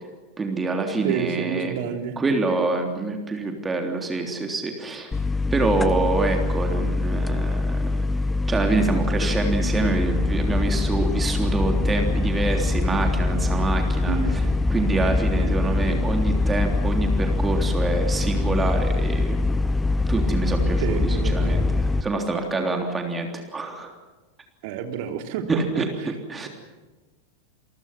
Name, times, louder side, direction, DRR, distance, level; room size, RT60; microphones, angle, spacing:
voice 1, 0.4-1.8 2.2-5.1 5.5-8.1 8.5-14.2 14.7-19.4 20.1-21.6 22.0-23.9 25.5-25.9 26.3-26.5, right 3 dB, 15° right, 4 dB, 3.4 m, -26 dB
voice 2, 1.0-2.2 14.0-14.3 15.3-16.0 20.8-21.6 24.6-26.1, right 8 dB, 50° right, 6 dB, 3.1 m, -30 dB
sound 1, 5.1-22.0, left 2 dB, 10° left, 1.1 m, -23 dB
29.5 x 23.5 x 6.0 m, 1.2 s
figure-of-eight pair, 90°, 0 cm